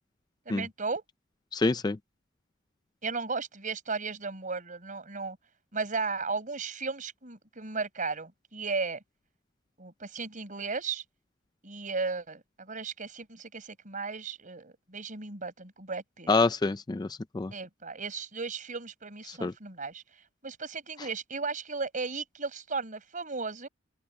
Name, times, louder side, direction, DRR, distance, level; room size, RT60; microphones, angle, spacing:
voice 1, 0.5-1.0 3.0-5.4 5.7-9.0 9.8-11.0 11.6-16.3 17.5-20.0 20.4-23.7, right 4 dB, 40° right, 5.2 m, -35 dB
voice 2, 1.5-2.0 16.3-17.5 19.3-19.5, left 3 dB, 20° left, 0.4 m, -27 dB
open air
head